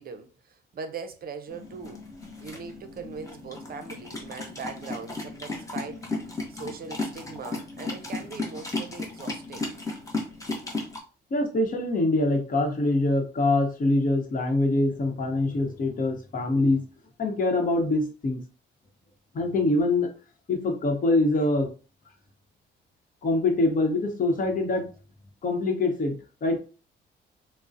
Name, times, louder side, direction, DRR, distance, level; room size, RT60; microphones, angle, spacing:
voice 1, 0.0-2.0 2.4-6.0 6.5-9.8, right 5 dB, 50° right, 0.6 m, -40 dB
sound 1, 1.5-11.0, left 2 dB, 15° left, 0.9 m, -35 dB
voice 2, 11.3-16.8 17.2-18.4 19.3-20.1 20.5-21.7 23.2-24.9 25.4-26.6, left 2 dB, 45° left, 0.9 m, -24 dB
3.7 x 2.0 x 2.6 m
cardioid pair, 90°, 20 cm